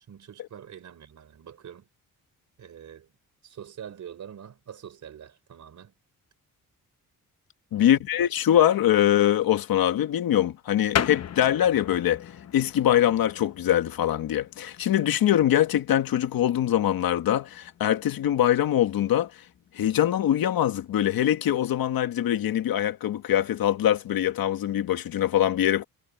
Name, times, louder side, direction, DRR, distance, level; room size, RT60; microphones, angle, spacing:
voice 1, 0.1-1.9 2.6-3.1 3.4-5.9 7.8-8.0, right 9 dB, 55° right, 4.1 m, -44 dB
voice 2, 7.7-12.2 12.5-19.3 19.7-25.8, left 11 dB, 85° left, 1.7 m, -23 dB
sound 1, 10.9-21.1, left 9 dB, 50° left, 0.9 m, -38 dB
wide cardioid pair, 170°, 34 cm